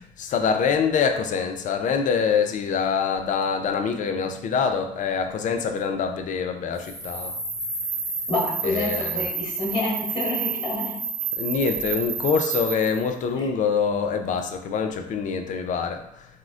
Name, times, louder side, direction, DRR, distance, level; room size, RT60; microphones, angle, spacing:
voice 1, 0.2-7.4 8.6-9.3 11.4-16.3, left 6 dB, 50° left, 6 dB, 0.4 m, -25 dB
sound 1, 6.8-13.1, right 5 dB, 75° right, 1.1 m, -30 dB
voice 2, 8.3-11.0 13.4-13.5, left 2 dB, 25° left, -6 dB, 1.3 m, -28 dB
3.7 x 2.1 x 2.4 m, 0.76 s
cardioid pair, 85°, 17 cm